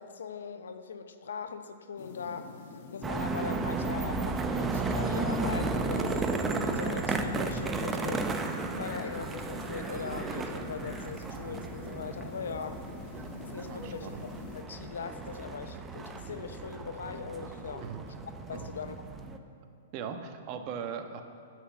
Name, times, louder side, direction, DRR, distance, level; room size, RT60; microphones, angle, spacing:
voice 1, 0.0-12.8 13.2-17.9 18.5-19.1, left 6 dB, 80° left, 8 dB, 0.9 m, -40 dB
sound 1, 2.0-14.6, left 5 dB, 55° left, 1.3 m, -46 dB
sound 2, 3.0-19.4, right 3 dB, 15° right, 0.8 m, -34 dB
sound 3, 8.4-9.2 9.7-11.1 11.5-11.6, left 2 dB, 15° left, 2.3 m, -51 dB
voice 2, 13.7-14.2 17.8-18.0 18.5-18.7 19.9-21.2, right 7 dB, 40° right, 6 dB, 1.2 m, -39 dB
9.8 x 8.3 x 8.1 m, 2.6 s
hypercardioid pair, 125°, 0 cm